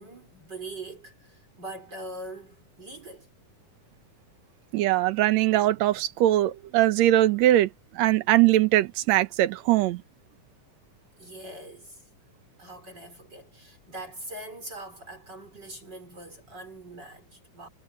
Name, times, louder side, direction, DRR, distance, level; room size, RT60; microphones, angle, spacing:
voice 1, 0.0-3.3 11.2-12.0 12.6-17.7, right 2 dB, 30° right, 4.7 m, -42 dB
voice 2, 4.7-7.7 8.0-10.0, right 14 dB, 70° right, 2.0 m, -21 dB
omnidirectional pair, 3.6 m